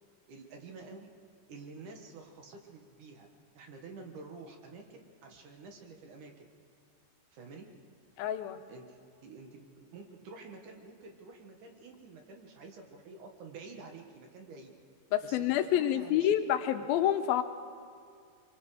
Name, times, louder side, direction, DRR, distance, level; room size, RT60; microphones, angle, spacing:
voice 1, 0.3-1.1 1.5-3.3 3.5-6.5 7.3-7.7 8.7-8.9 9.2-14.7 15.2-15.5 15.7-16.3, right 4 dB, 60° right, 3 dB, 2.7 m, -49 dB
voice 2, 8.2-8.6 15.1-17.4, left 11 dB, 80° left, 8 dB, 2.6 m, -28 dB
24.5 x 23.5 x 4.9 m, 2.3 s
omnidirectional pair, 4.3 m